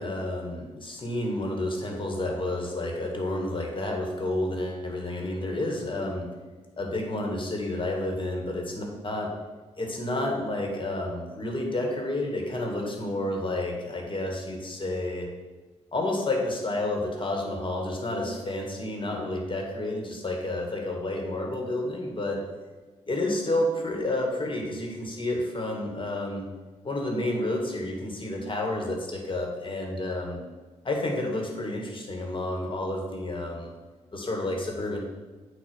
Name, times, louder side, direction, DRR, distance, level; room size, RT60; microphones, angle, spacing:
voice 1, 0.0-6.3 6.8-9.3 9.8-15.3 15.9-22.4 23.1-26.4 26.8-30.4 30.8-33.7 34.1-35.0, left 1 dB, 40° left, 1 dB, 2.0 m, -30 dB
8.8 x 3.0 x 6.2 m, 1.3 s
hypercardioid pair, 45°, 14 cm